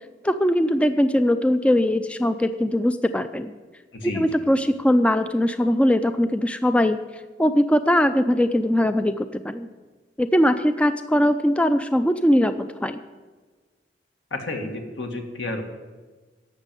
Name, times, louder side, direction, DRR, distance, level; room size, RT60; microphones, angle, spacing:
voice 1, 0.2-3.5 4.1-7.0 7.4-9.7 10.2-13.0, equal, 5° left, 10 dB, 0.4 m, -21 dB
voice 2, 3.9-4.2 14.3-15.6, left 2 dB, 75° left, 3 dB, 1.9 m, -31 dB
11.5 x 7.4 x 9.1 m, 1.3 s
head